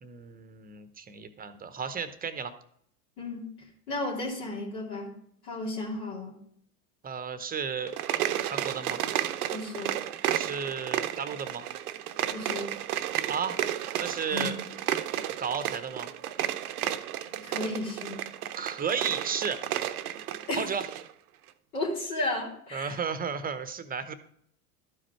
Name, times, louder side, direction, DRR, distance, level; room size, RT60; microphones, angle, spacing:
voice 1, 0.0-2.5 7.0-7.9 8.4-9.0 10.3-11.6 13.3-13.6 14.0-14.6 15.4-16.1 18.5-19.8 20.5-20.9 22.7-24.1, right 6 dB, 20° right, 11 dB, 0.7 m, -33 dB
voice 2, 3.2-3.5 3.9-5.1 5.4-6.4 9.5-9.9 12.3-12.7 14.3-14.5 17.4-18.2 20.5-20.6 21.7-23.0, left 2 dB, 75° left, -4 dB, 3.1 m, -33 dB
sound 1, 7.8-21.1, right 12 dB, 80° right, 0.6 m, -32 dB
12.5 x 5.0 x 4.4 m, 0.66 s
hypercardioid pair, 90°, 45 cm